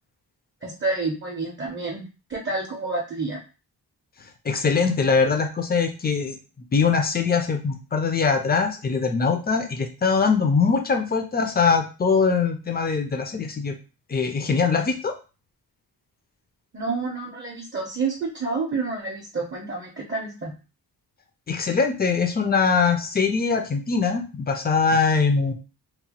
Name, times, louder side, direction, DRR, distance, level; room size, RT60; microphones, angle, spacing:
voice 1, 0.6-2.0 2.3-3.4 16.7-20.5, right 3 dB, 30° right, 0 dB, 0.5 m, -29 dB
voice 2, 4.4-6.4 6.7-13.8 14.1-15.1 21.5-25.5, left 5 dB, 25° left, 5 dB, 0.4 m, -22 dB
2.9 x 2.0 x 2.8 m, 0.32 s
wide cardioid pair, 150°, 40 cm